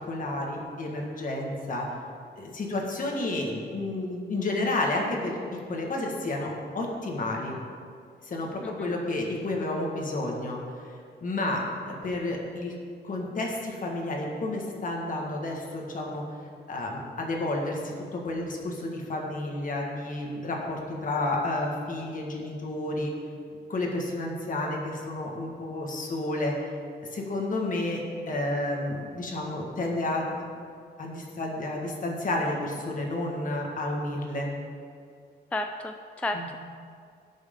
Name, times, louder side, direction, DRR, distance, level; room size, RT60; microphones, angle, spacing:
voice 1, 0.0-1.9 2.4-7.6 8.2-10.6 11.2-12.7 13.0-16.2 16.7-23.1 23.7-26.7 27.1-30.4 31.0-34.5 36.3-36.5, left 2 dB, 50° left, -1 dB, 1.7 m, -31 dB
voice 2, 8.6-8.9 35.5-36.6, left 1 dB, 5° left, 5 dB, 0.3 m, -33 dB
17.0 x 6.3 x 3.7 m, 2.3 s
wide cardioid pair, 170°, 18 cm